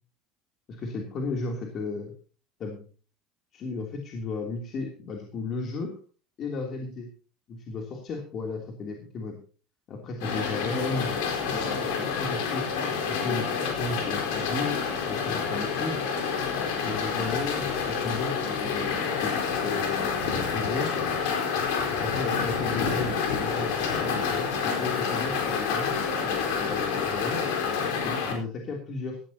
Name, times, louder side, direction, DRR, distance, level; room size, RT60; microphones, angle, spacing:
voice 1, 0.7-2.1 2.6-2.9 3.5-5.9 6.4-7.1 7.5-9.4 9.9-11.1 11.5-14.8 15.1-16.0 16.8-20.9 22.0-27.4 28.0-29.2, left 3 dB, 40° left, 1 dB, 3.1 m, -34 dB
sound 1, 10.2-28.3, left 6 dB, 80° left, 4.4 m, -28 dB
17.0 x 14.5 x 2.9 m, 0.38 s
supercardioid pair, 125°, 0 cm